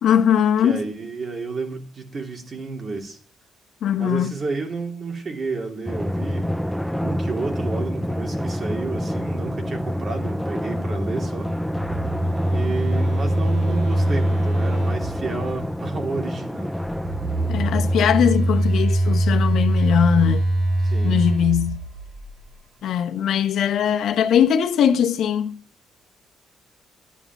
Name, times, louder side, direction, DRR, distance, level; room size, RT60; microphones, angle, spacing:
voice 1, 0.0-0.8 3.8-4.3 17.5-20.5 21.0-21.8 22.8-25.6, left 9 dB, 75° left, 1.1 m, -20 dB
voice 2, 0.6-3.2 4.0-6.5 7.0-11.5 12.5-16.7 20.8-21.2, right 3 dB, 40° right, 2.9 m, -31 dB
Drum, 5.9-18.9, equal, ahead, 0.6 m, -28 dB
Telephone, 11.6-15.6 16.8-22.5, right 1 dB, 65° right, 7.8 m, -23 dB
11.5 x 9.9 x 6.0 m
cardioid pair, 90°, 0 cm